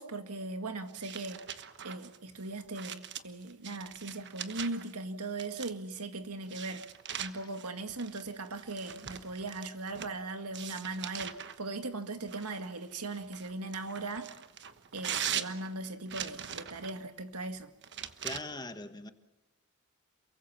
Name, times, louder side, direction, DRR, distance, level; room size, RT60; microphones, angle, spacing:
voice 1, 0.0-1.4 1.8-6.8 7.2-14.3 14.9-17.7, right 2 dB, 85° right, 2.0 m, -39 dB
sound 1, 0.9-4.9 5.4-6.0 6.5-10.2 10.5-11.6 12.3-17.0 17.8-18.4, right 9 dB, 50° right, 1.2 m, -41 dB
voice 2, 18.2-19.1, left 2 dB, 20° left, 1.3 m, -41 dB
28.5 x 23.0 x 5.8 m
head